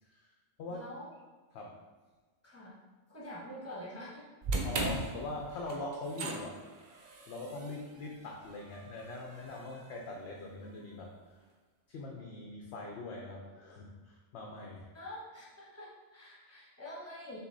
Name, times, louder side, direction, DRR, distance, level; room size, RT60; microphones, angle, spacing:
voice 1, 0.0-0.3 0.6-0.9 1.5-1.8 4.6-6.6 7.3-11.4 11.9-14.9, left 2 dB, 65° left, -1 dB, 0.8 m, -42 dB
voice 2, 0.7-1.1 2.4-2.8 3.1-4.2 14.9-17.4, left 1 dB, 10° left, -6 dB, 1.3 m, -46 dB
sound 1, 4.4-10.7, right 2 dB, 50° right, 0.6 m, -40 dB
6.0 x 3.1 x 2.6 m, 1.3 s
omnidirectional pair, 1.3 m